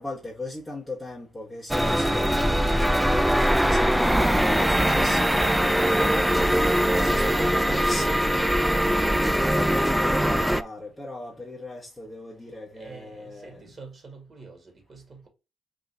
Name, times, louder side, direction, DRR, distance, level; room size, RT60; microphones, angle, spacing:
voice 1, 0.0-13.8, left 2 dB, 15° left, 1.1 m, -39 dB
sound 1, 1.7-10.6, equal, 5° right, 0.3 m, -22 dB
voice 2, 12.8-15.3, right 4 dB, 45° right, 1.9 m, -46 dB
3.9 x 2.5 x 4.0 m
cardioid pair, 90°, 0 cm